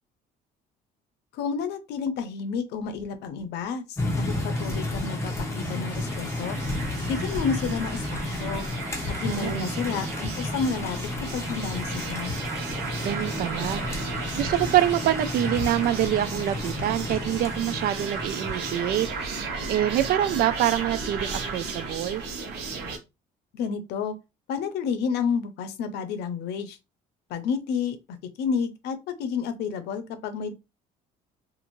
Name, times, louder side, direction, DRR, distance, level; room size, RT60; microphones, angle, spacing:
voice 1, 1.3-6.6 7.1-8.6 9.2-11.0 11.3-12.3 23.5-24.1 24.5-26.8 27.3-30.5, left 6 dB, 80° left, 0.6 m, -30 dB
sound 1, 4.0-19.5, left 1 dB, 15° left, 0.9 m, -32 dB
sound 2, 4.2-23.0, right 4 dB, 80° right, 0.9 m, -35 dB
voice 2, 9.3-9.7 13.0-19.1 19.7-22.2, right 12 dB, 65° right, 0.4 m, -26 dB
2.5 x 2.5 x 2.9 m
cardioid pair, 110°, 17 cm